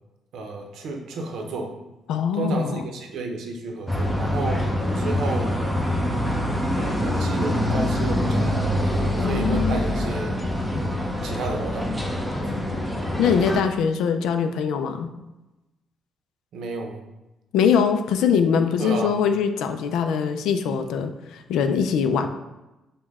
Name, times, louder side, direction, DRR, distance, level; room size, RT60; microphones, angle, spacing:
voice 1, 0.3-1.7 2.3-5.6 6.8-8.7 9.2-10.4 11.2-11.9 12.3-12.4 16.5-17.0 18.8-19.1, right 3 dB, 75° right, 3 dB, 0.6 m, -32 dB
voice 2, 2.1-2.8 9.2-9.8 13.2-15.1 17.5-22.3, left 7 dB, 85° left, 7 dB, 0.3 m, -22 dB
sound 1, 3.9-13.6, left 1 dB, 5° left, 0.6 m, -25 dB
5.1 x 2.2 x 3.5 m, 1.0 s
cardioid pair, 90°, 0 cm